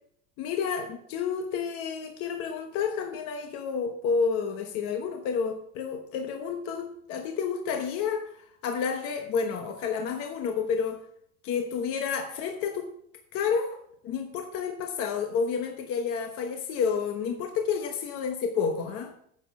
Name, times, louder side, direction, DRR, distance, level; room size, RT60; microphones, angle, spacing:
voice 1, 0.4-11.0 11.4-13.0 13.3-19.1, left 6 dB, 40° left, 4 dB, 1.1 m, -30 dB
9.4 x 6.9 x 6.0 m, 0.67 s
cardioid pair, 175°, 34 cm